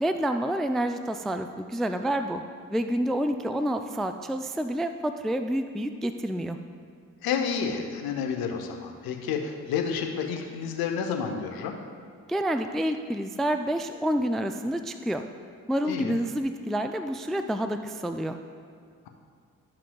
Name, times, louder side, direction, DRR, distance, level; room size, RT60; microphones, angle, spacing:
voice 1, 0.0-2.4 2.7-6.6 12.3-15.2 15.7-18.4, right 1 dB, ahead, 8 dB, 0.3 m, -28 dB
voice 2, 7.2-11.8 15.9-16.2, left 6 dB, 70° left, 4 dB, 0.9 m, -30 dB
12.5 x 5.8 x 2.3 m, 2.1 s
hypercardioid pair, 40°, 38 cm